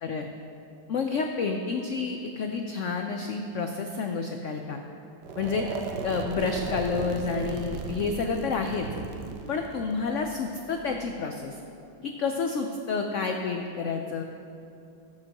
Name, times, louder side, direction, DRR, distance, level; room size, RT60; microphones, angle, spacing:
voice 1, 0.9-4.8 5.4-5.7 6.0-8.9 9.5-11.6 12.0-14.2, left 5 dB, 90° left, 4 dB, 0.6 m, -29 dB
sound 1, 5.2-11.2, right 5 dB, 75° right, 1.3 m, -36 dB
17.0 x 7.7 x 2.9 m, 2.6 s
omnidirectional pair, 2.0 m